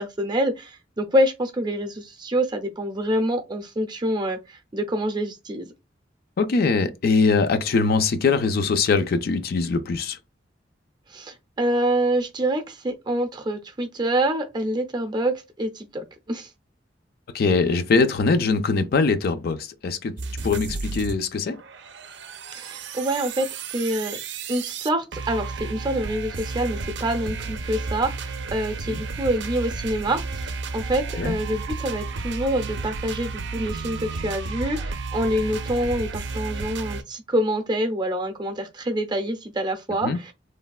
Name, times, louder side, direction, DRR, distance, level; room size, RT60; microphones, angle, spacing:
voice 1, 0.0-5.7 11.1-16.5 22.5-24.2 24.5-40.3, right 1 dB, 25° right, 0.6 m, -26 dB
voice 2, 6.4-10.2 17.3-20.2 20.4-21.6 28.9-29.0 31.2-31.4 40.0-40.2, left 4 dB, 55° left, 0.4 m, -22 dB
sound 1, 20.2-21.2 21.5-37.0, right 4 dB, 70° right, 0.5 m, -32 dB
3.2 x 2.2 x 2.3 m
head